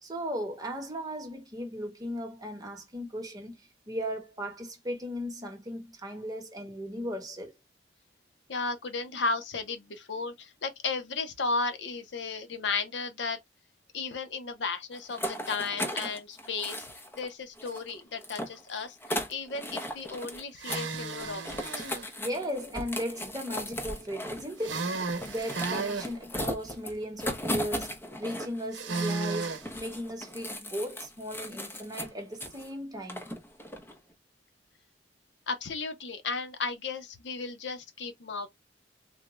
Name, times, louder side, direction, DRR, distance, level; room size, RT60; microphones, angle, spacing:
voice 1, 0.0-3.5 3.9-7.5 22.2-24.9 25.2-33.2, equal, 20° right, 1.0 m, -36 dB
voice 2, 8.5-13.4 13.9-16.9 17.2-21.9 35.5-38.5, left 4 dB, 70° left, 0.7 m, -34 dB
sound 1, 14.9-17.3 17.6-20.4 20.7-20.9 21.1-28.6 28.9-32.7 33.1-34.0, left 1 dB, 10° left, 0.6 m, -37 dB
sound 2, 20.6-22.1 24.6-26.1 28.7-29.7, right 4 dB, 90° right, 0.7 m, -33 dB
3.6 x 2.2 x 3.0 m
head